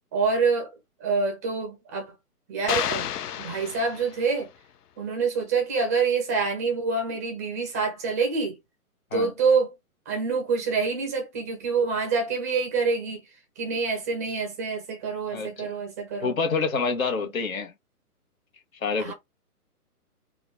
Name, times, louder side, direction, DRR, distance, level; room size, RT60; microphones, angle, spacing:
voice 1, 0.1-0.7 1.0-2.1 2.5-3.1 3.4-4.5 5.0-8.6 9.1-9.7 10.1-13.2 13.6-16.4 19.0-19.1, right 4 dB, 10° right, 0.5 m, -26 dB
sound 1, 2.7-4.4, left 10 dB, 80° left, 0.6 m, -31 dB
voice 2, 15.3-15.7 16.2-17.7 18.8-19.1, left 4 dB, 60° left, 1.3 m, -27 dB
3.8 x 2.3 x 3.5 m
hypercardioid pair, 140°, 46 cm